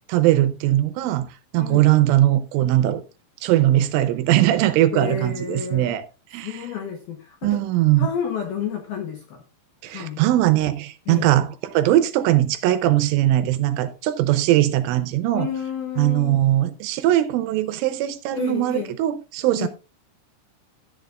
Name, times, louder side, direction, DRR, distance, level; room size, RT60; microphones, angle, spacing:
voice 1, 0.1-3.0 3.4-6.0 6.3-6.5 7.4-8.1 9.8-15.5 16.0-19.7, right 14 dB, 80° right, 3.1 m, -20 dB
voice 2, 1.6-1.9 4.9-6.0 6.4-7.6 8.0-9.4 9.9-10.2 11.1-11.3 15.3-16.4 18.3-19.0 19.6-19.7, left 8 dB, 75° left, 2.3 m, -30 dB
13.5 x 9.2 x 2.4 m
omnidirectional pair, 5.9 m